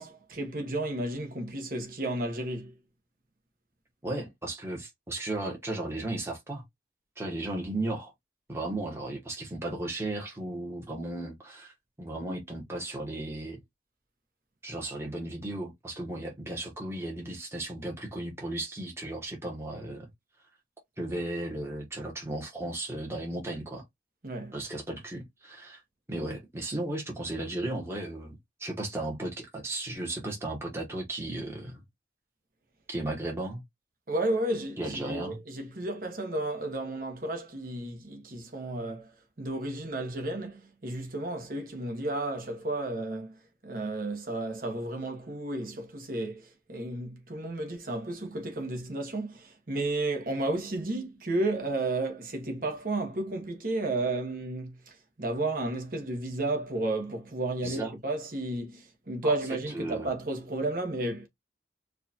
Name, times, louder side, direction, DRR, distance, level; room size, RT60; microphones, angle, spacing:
voice 1, 0.0-2.7 24.2-24.5 34.1-43.4 43.6-61.3, right 2 dB, 50° right, 1.1 m, -32 dB
voice 2, 4.0-6.6 7.2-8.1 8.5-13.6 14.6-20.1 21.0-23.8 24.5-25.8 26.1-31.8 32.9-33.6 34.8-35.4 57.6-57.9 59.2-59.3 59.7-60.1, right 2 dB, 15° right, 1.0 m, -35 dB
4.7 x 2.4 x 2.8 m
head